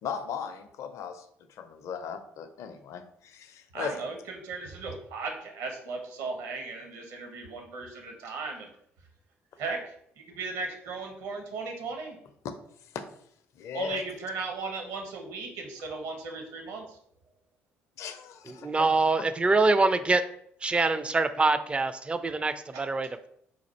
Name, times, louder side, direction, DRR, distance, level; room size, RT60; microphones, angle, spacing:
voice 1, 0.0-4.0 12.4-12.5 12.9-13.0 13.6-14.0 18.0-18.9 19.2-19.3, left 7 dB, 50° left, 9 dB, 0.5 m, -37 dB
voice 2, 3.7-8.7 9.6-12.2 13.7-17.0 22.7-22.8, right 4 dB, 60° right, 3 dB, 0.9 m, -37 dB
voice 3, 18.5-20.2 20.6-23.3, right 3 dB, 15° right, 11 dB, 0.4 m, -25 dB
4.1 x 2.4 x 4.3 m, 0.69 s
figure-of-eight pair, 50°, 6 cm